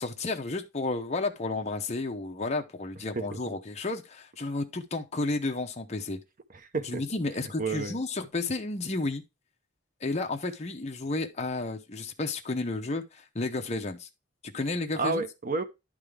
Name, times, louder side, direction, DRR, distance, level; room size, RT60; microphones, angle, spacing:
voice 1, 0.0-6.2 6.8-9.2 10.0-14.1 14.4-15.2, left 3 dB, 30° left, 0.7 m, -32 dB
voice 2, 3.1-3.6 6.5-7.0 7.6-8.0 15.0-15.6, right 3 dB, 40° right, 0.8 m, -31 dB
11.0 x 3.7 x 3.3 m
head